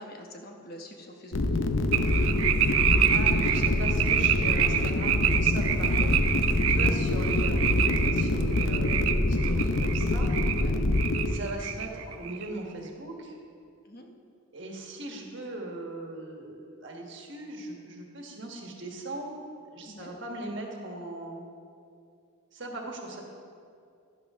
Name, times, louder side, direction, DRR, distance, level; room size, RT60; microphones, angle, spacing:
voice 1, 0.0-1.5 6.7-6.9 10.5-10.8 13.8-14.1 19.9-20.1, left 1 dB, 45° left, 2 dB, 1.1 m, -45 dB
sound 1, 1.3-11.3, left 2 dB, 60° left, 0.6 m, -25 dB
sound 2, 1.9-10.6 10.9-12.5, right 10 dB, 75° right, 0.5 m, -27 dB
voice 2, 3.1-6.2 6.7-10.3 11.3-13.4 14.5-19.3 19.7-21.4 22.5-23.2, right 2 dB, 55° right, 1 dB, 1.5 m, -39 dB
11.5 x 11.5 x 3.6 m, 2.5 s
head